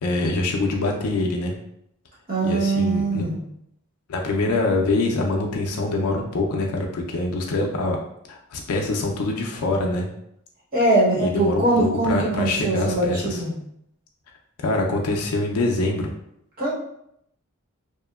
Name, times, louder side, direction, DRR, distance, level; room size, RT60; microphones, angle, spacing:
voice 1, 0.0-1.5 2.4-3.3 4.1-8.0 8.3-10.1 11.2-13.4 14.6-16.1, left 2 dB, 90° left, 1 dB, 0.4 m, -24 dB
voice 2, 2.3-3.4 10.7-13.5 16.6-16.7, right 2 dB, 40° right, -7 dB, 0.9 m, -22 dB
2.8 x 2.1 x 2.2 m, 0.75 s
head